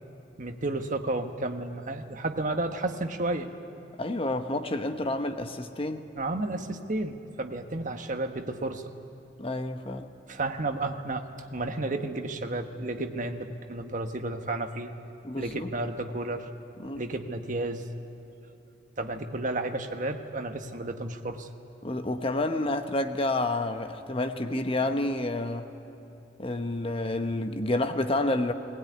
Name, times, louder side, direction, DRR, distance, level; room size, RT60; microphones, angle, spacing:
voice 1, 0.4-3.5 6.2-8.9 10.3-11.2 11.5-14.9 15.4-16.5 16.9-17.9 19.0-21.5, right 2 dB, 45° right, 5 dB, 1.3 m, -32 dB
voice 2, 4.0-6.0 9.4-10.1 15.2-15.7 16.8-17.0 21.8-25.7 26.4-28.5, left 2 dB, 30° left, 7 dB, 1.0 m, -29 dB
20.0 x 19.5 x 9.4 m, 2.9 s
head